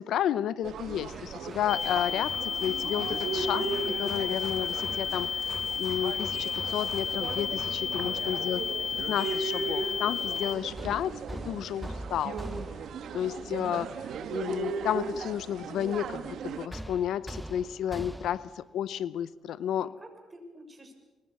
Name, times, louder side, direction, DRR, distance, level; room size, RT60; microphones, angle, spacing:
voice 1, 0.0-8.6 9.1-11.2 11.4-12.4 13.1-13.9 14.3-19.9, left 10 dB, 75° left, 17 dB, 0.7 m, -32 dB
sound 1, 0.6-16.7, right 5 dB, 70° right, 1.9 m, -37 dB
Hammer, 1.1-8.5 10.8-13.2 16.7-18.6, right 1 dB, 5° right, 0.9 m, -43 dB
sound 2, 1.7-10.5, left 6 dB, 40° left, 0.9 m, -32 dB
voice 2, 8.0-8.5 19.8-20.9, right 1 dB, 20° right, 4 dB, 6.8 m, -49 dB
25.5 x 21.5 x 7.2 m, 1.3 s
cardioid pair, 90°, 0 cm